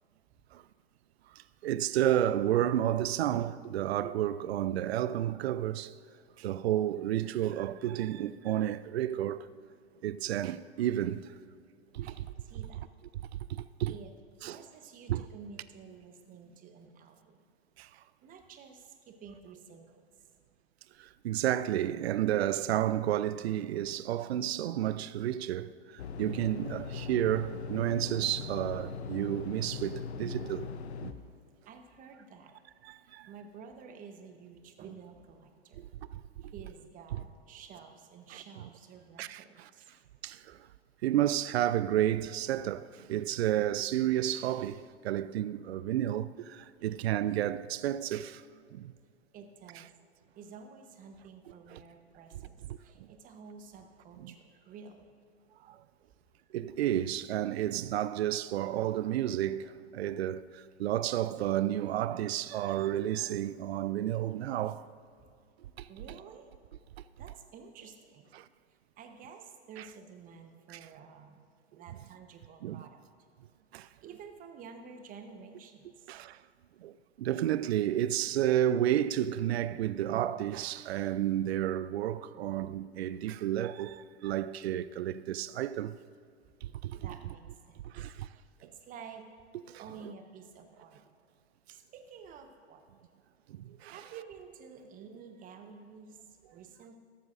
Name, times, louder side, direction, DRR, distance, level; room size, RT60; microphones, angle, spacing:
voice 1, 1.3-5.9 6.4-9.5 10.0-11.3 11.9-12.3 13.5-13.9 14.4-14.6 15.1-15.2 17.8-17.9 21.0-30.7 31.0-31.1 32.8-33.3 35.8-36.2 37.1-37.2 38.3-38.4 39.2-39.7 40.2-40.7 41.0-48.4 48.7-48.9 51.7-51.8 52.7-53.1 54.2-54.3 55.7-55.8 56.5-64.8 65.8-65.9 68.3-68.5 69.8-69.9 70.7-70.8 72.6-72.9 73.7-73.9 76.1-76.4 76.8-86.0 86.6-87.1 87.8-88.3 89.7-90.1 93.5-94.0, right 12 dB, 65° right, 0.5 m, -31 dB
voice 2, 12.0-12.9 13.9-14.1 14.4-17.4 18.2-20.0 31.6-32.6 33.0-35.8 36.4-39.9 40.3-40.7 46.8-47.0 49.3-49.9 50.4-55.1 56.4-56.5 65.9-66.5 67.2-68.3 68.7-73.0 73.7-76.1 86.9-87.9 88.6-89.2 89.8-91.0 91.7-92.8 93.9-97.0, right 6 dB, 25° right, 1.0 m, -51 dB
sound 1, 26.0-31.1, left 5 dB, 70° left, 0.8 m, -40 dB
13.5 x 12.5 x 2.6 m
hypercardioid pair, 110°, 34 cm